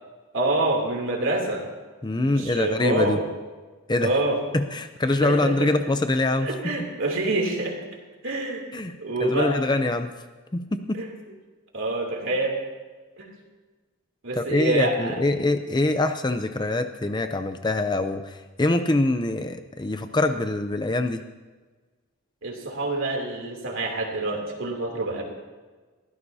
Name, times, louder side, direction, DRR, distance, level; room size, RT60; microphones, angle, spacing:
voice 1, 0.3-1.6 2.2-3.2 4.0-4.4 5.2-5.7 6.4-7.8 8.2-8.7 9.0-9.6 11.0-11.1 11.7-12.6 13.2-13.3 14.2-15.2 22.4-25.2, right 2 dB, 60° right, 1 dB, 3.0 m, -26 dB
voice 2, 2.0-3.2 3.9-4.1 4.5-6.9 8.7-10.1 10.5-11.0 14.3-21.2, left 2 dB, 20° left, 8 dB, 0.5 m, -24 dB
22.0 x 16.0 x 2.8 m, 1.3 s
head